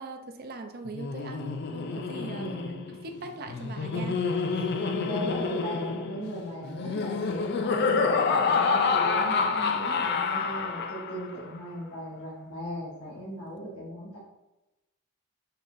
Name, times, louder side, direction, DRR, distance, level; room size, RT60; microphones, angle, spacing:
voice 1, 0.0-2.5 3.0-4.2 4.5-4.8, right 3 dB, 45° right, 5 dB, 0.5 m, -41 dB
Laughter, 0.9-11.3, left 4 dB, 45° left, 0.3 m, -28 dB
voice 2, 2.4-2.8 4.8-14.2, equal, 75° left, -6 dB, 1.1 m, -37 dB
5.5 x 3.7 x 2.5 m, 0.98 s
head